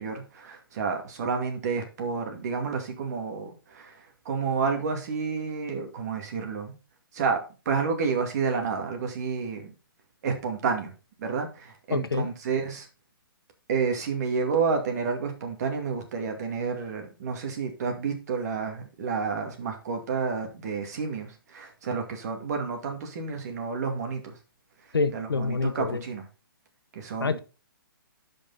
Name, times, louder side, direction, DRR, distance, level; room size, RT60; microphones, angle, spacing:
voice 1, 0.0-6.8 7.1-7.4 7.7-9.7 10.2-10.9 11.2-12.9 13.7-24.4 25.1-26.3 26.9-27.4, right 5 dB, 45° right, 4 dB, 2.4 m, -30 dB
voice 2, 11.9-12.3 24.9-26.0 27.2-27.4, left 4 dB, 85° left, 11 dB, 1.1 m, -27 dB
10.5 x 5.4 x 4.1 m, 0.33 s
hypercardioid pair, 145°, 12 cm